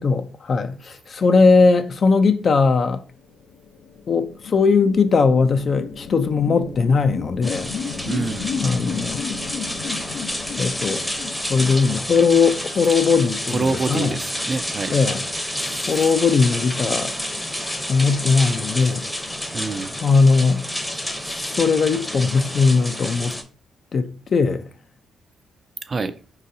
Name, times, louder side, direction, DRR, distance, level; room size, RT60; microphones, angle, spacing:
voice 1, 0.0-3.0 4.1-7.7 8.6-9.2 10.6-11.0 11.5-14.2 14.9-15.2 15.9-17.1 17.9-19.0 20.0-20.6 21.5-23.4 23.9-24.6, left 4 dB, 45° left, 0.4 m, -19 dB
sound 1, 3.3-13.1, left 6 dB, 85° left, 0.7 m, -33 dB
sound 2, 7.4-23.4, left 1 dB, 5° left, 0.7 m, -29 dB
voice 2, 8.0-8.5 13.5-15.0 19.5-20.0 25.8-26.1, right 4 dB, 40° right, 0.3 m, -26 dB
4.7 x 3.8 x 2.7 m
cardioid pair, 90°, 0 cm